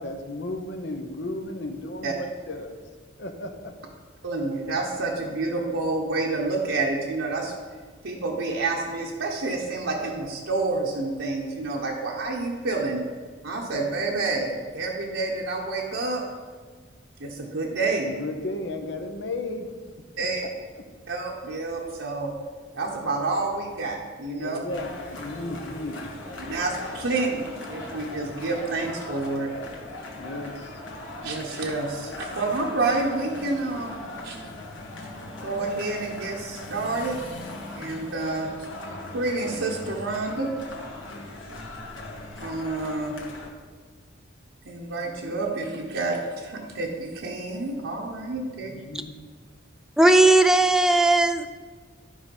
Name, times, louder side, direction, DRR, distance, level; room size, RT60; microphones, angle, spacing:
voice 1, 0.0-2.8 3.2-3.7 18.0-19.7 20.8-20.9 24.3-26.0 30.2-30.8 48.5-49.2, left 2 dB, 60° left, 5 dB, 1.0 m, -34 dB
voice 2, 4.2-7.5 8.0-13.0 13.4-16.2 17.2-18.1 20.2-20.4 21.1-22.3 22.7-24.6 26.4-29.5 31.2-33.9 34.2-34.4 35.4-37.1 37.7-38.5 39.1-40.5 42.4-43.2 44.6-48.7, right 3 dB, 80° right, -2 dB, 1.1 m, -28 dB
sound 1, 24.7-43.5, left 2 dB, 85° left, 1.6 m, -39 dB
voice 3, 50.0-51.5, right 2 dB, 5° right, 7 dB, 0.4 m, -17 dB
12.0 x 4.9 x 5.4 m, 1.5 s
head